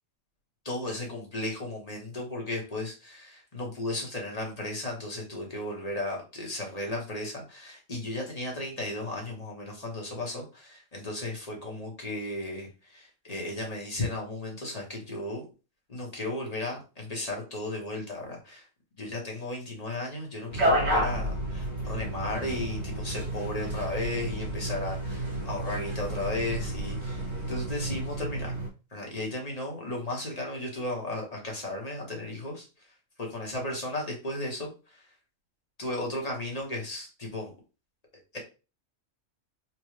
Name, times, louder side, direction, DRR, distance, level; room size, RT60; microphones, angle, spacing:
voice 1, 0.6-15.4 15.9-18.6 19.0-28.5 28.9-32.7 33.2-35.0 35.8-37.5 38.3-38.4, left 1 dB, 30° left, -1 dB, 1.0 m, -35 dB
sound 1, 20.5-28.7, right 1 dB, 50° right, 1.5 m, -31 dB
4.3 x 2.3 x 3.1 m, 0.32 s
omnidirectional pair, 1.4 m